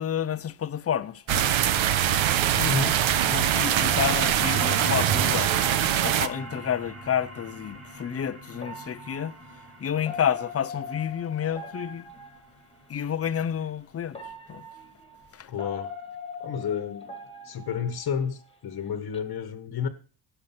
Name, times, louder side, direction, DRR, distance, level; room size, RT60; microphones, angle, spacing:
voice 1, 0.0-1.6 3.3-12.1 12.9-14.2 14.5-14.6 15.3-15.5, left 8 dB, 30° left, 0.7 m, -30 dB
sound 1, 1.0-1.2 2.5-7.3 8.5-12.8 13.6-13.7 14.1-18.5 18.9-19.2, left 2 dB, 10° left, 1.9 m, -41 dB
sound 2, 1.3-6.3, right 10 dB, 70° right, 1.2 m, -23 dB
voice 2, 2.5-3.0 15.5-15.9 16.4-17.1 17.4-19.9, left 6 dB, 45° left, 1.4 m, -31 dB
sound 3, 3.7-14.8, right 1 dB, 30° right, 4.8 m, -44 dB
17.0 x 6.8 x 5.9 m
cardioid pair, 160°, 49 cm